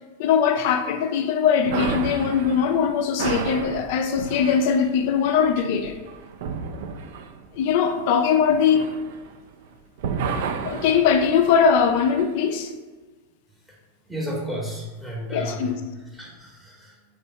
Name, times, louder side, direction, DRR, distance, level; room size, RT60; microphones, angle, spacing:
voice 1, 0.2-6.0 7.5-8.9 10.6-12.7 15.3-15.8, left 7 dB, 50° left, 0.4 m, -21 dB
sound 1, 1.7-9.7 10.0-12.3, right 6 dB, 55° right, 0.3 m, -32 dB
voice 2, 14.1-15.7 16.1-17.0, right 1 dB, ahead, 0.9 m, -32 dB
3.4 x 3.0 x 4.4 m
figure-of-eight pair, 90°, 0 cm